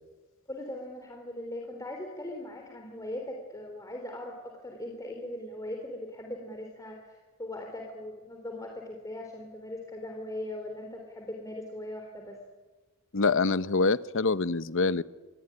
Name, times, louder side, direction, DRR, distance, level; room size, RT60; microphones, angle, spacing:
voice 1, 0.5-12.4, left 1 dB, 15° left, 2 dB, 3.3 m, -40 dB
voice 2, 13.1-15.0, left 3 dB, 60° left, 16 dB, 0.8 m, -25 dB
27.0 x 21.5 x 9.9 m, 1.3 s
head